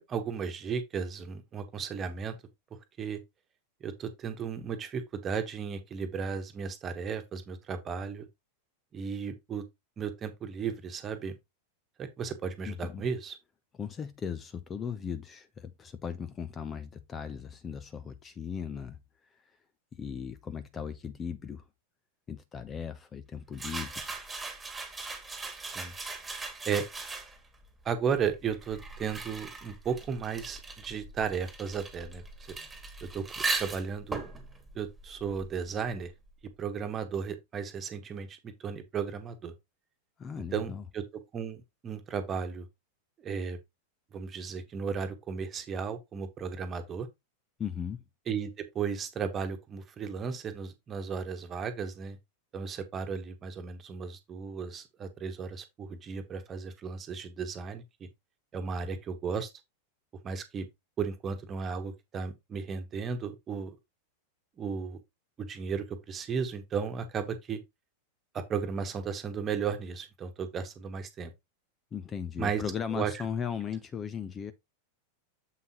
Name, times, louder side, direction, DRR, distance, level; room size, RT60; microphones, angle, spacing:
voice 1, 0.0-2.4 3.0-3.2 3.8-8.3 8.9-9.6 10.0-11.4 12.0-13.3 25.6-25.9 26.6-26.8 27.8-32.6 33.0-33.2 33.5-34.2 34.7-36.1 36.6-39.5 40.5-41.0 41.3-42.7 43.2-43.6 44.1-47.1 48.3-52.2 52.5-57.8 58.5-59.5 60.2-60.7 61.0-63.8 64.6-65.0 65.4-67.6 68.3-71.3 72.4-72.6 72.9-73.1, right 6 dB, 25° right, 1.4 m, -35 dB
voice 2, 12.7-13.1 13.8-19.0 19.3-19.4 19.9-21.6 22.3-24.0 40.2-40.8 47.6-48.0 71.9-74.5, left 7 dB, 20° left, 0.7 m, -37 dB
sound 1, 23.5-27.6 28.3-35.7, right 3 dB, 10° right, 2.0 m, -39 dB
7.6 x 5.5 x 3.0 m
figure-of-eight pair, 90°, 0 cm